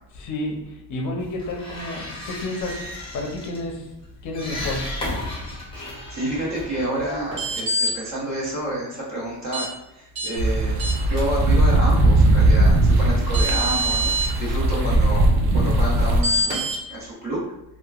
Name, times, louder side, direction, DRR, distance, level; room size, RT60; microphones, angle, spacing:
voice 1, 0.1-3.9 4.2-4.8 14.5-15.0, left 2 dB, 50° left, 1 dB, 0.6 m, -31 dB
sound 1, 1.2-7.7, left 1 dB, 15° left, 0.7 m, -35 dB
voice 2, 5.8-10.8 11.1-17.4, right 1 dB, 40° right, -6 dB, 1.2 m, -29 dB
sound 2, 7.3-7.9 9.5-9.7 10.2-10.3 10.8-11.2 12.9-13.0 13.3-14.3 16.2-16.8, right 1 dB, 90° right, 1.1 m, -24 dB
sound 3, 10.4-16.2, right 1 dB, 65° right, 0.5 m, -18 dB
2.8 x 2.3 x 2.3 m, 0.87 s
cardioid pair, 130°, 41 cm